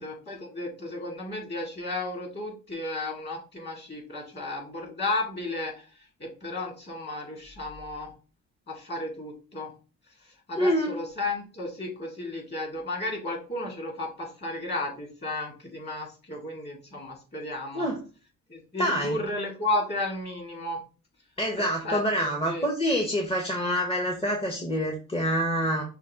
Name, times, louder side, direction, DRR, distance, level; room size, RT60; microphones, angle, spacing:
voice 1, 0.0-5.9 6.2-8.1 8.7-9.7 10.2-17.9 18.5-20.8 21.5-22.7 24.2-24.3, left 2 dB, 35° left, 0 dB, 2.3 m, -33 dB
voice 2, 10.6-11.0 17.7-18.0 18.8-19.2 21.4-25.8, equal, 20° left, 2 dB, 0.9 m, -26 dB
5.7 x 2.4 x 3.6 m, 0.35 s
cardioid pair, 90°, 30 cm